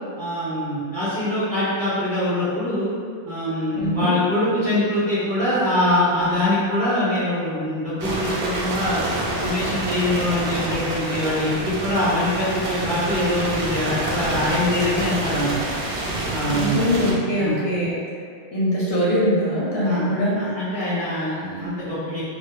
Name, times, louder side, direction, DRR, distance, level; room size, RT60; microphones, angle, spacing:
voice 1, 0.2-2.9 3.2-9.0 9.4-15.5 16.3-16.8 17.1-17.6 19.8-20.1 20.4-22.2, left 1 dB, 30° right, -12 dB, 0.7 m, -23 dB
voice 2, 3.7-4.1 16.5-17.9 18.5-20.4, equal, 80° left, -7 dB, 0.8 m, -22 dB
sound 1, 8.0-17.1, right 2 dB, 65° right, 0.7 m, -27 dB
2.3 x 2.0 x 3.1 m, 2.2 s
omnidirectional pair, 1.1 m